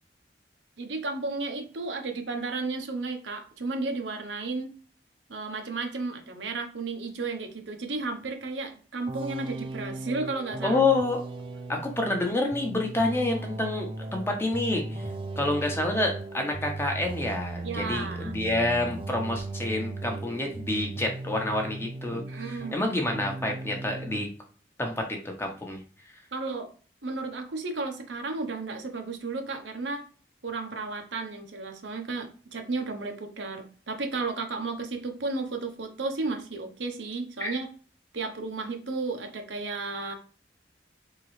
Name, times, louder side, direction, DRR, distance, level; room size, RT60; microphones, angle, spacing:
voice 1, 0.8-4.7 5.3-10.8 17.6-18.4 22.3-22.9 26.3-26.7 27.0-30.0 30.4-37.7 38.1-40.1, right 3 dB, 90° right, 4 dB, 0.9 m, -33 dB
sound 1, 9.1-22.8 23.1-24.3, right 2 dB, 30° right, 0.3 m, -37 dB
voice 2, 10.6-11.2 11.7-15.1 15.4-24.3 24.8-25.8 37.4-37.5, left 2 dB, 15° left, 2 dB, 0.8 m, -28 dB
3.8 x 3.7 x 3.1 m, 0.39 s
head